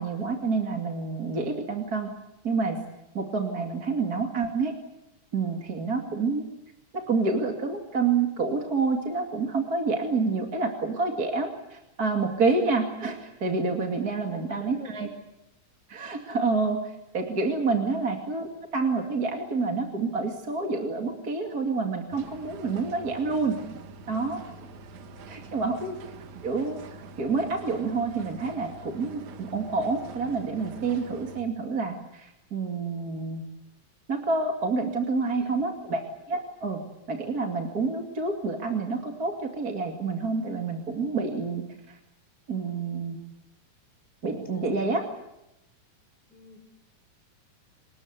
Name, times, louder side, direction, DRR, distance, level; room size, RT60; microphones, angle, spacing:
voice 1, 0.0-2.1 2.4-2.8 3.1-4.7 5.3-6.5 6.9-15.1 15.9-23.6 24.1-24.4 25.3-26.0 26.4-33.4 34.1-36.0 36.3-36.8 37.1-42.0 42.5-43.2 44.2-45.0, right 4 dB, 30° right, 3 dB, 2.6 m, -28 dB
voice 2, 14.2-15.0 17.8-18.0 25.1-25.9 35.4-35.6 44.5-44.8 46.3-46.6, left 2 dB, 5° left, 3 dB, 5.6 m, -49 dB
sound 1, 22.1-31.4, right 3 dB, 75° right, 2.8 m, -45 dB
27.0 x 20.5 x 8.2 m, 0.88 s
omnidirectional pair, 3.5 m